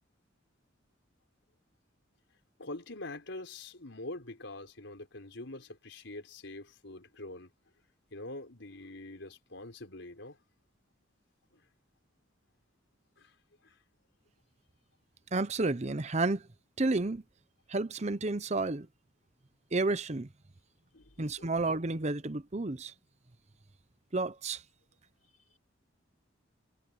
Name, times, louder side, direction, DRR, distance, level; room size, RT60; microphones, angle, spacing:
voice 1, 2.6-7.5 8.1-10.4 13.2-13.3 13.6-13.8 20.9-21.1 21.4-21.5, left 2 dB, 70° left, 4.7 m, -44 dB
voice 2, 15.3-16.4 16.8-17.2 17.7-18.9 19.7-20.3 21.2-22.9 24.1-24.6, right 2 dB, 35° right, 0.8 m, -31 dB
head